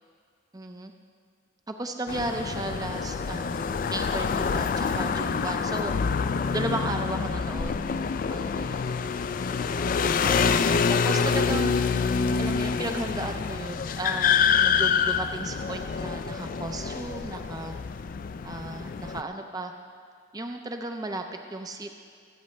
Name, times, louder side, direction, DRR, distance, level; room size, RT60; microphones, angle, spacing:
voice 1, 0.5-0.9 1.7-5.9 6.5-8.9 9.6-11.7 12.4-17.7 18.4-19.7 20.3-21.2 21.5-21.9, right 2 dB, 20° right, 5 dB, 0.5 m, -35 dB
sound 1, 2.1-19.2, left 6 dB, 45° left, 0.3 m, -26 dB
24.0 x 8.4 x 3.2 m, 2.2 s
head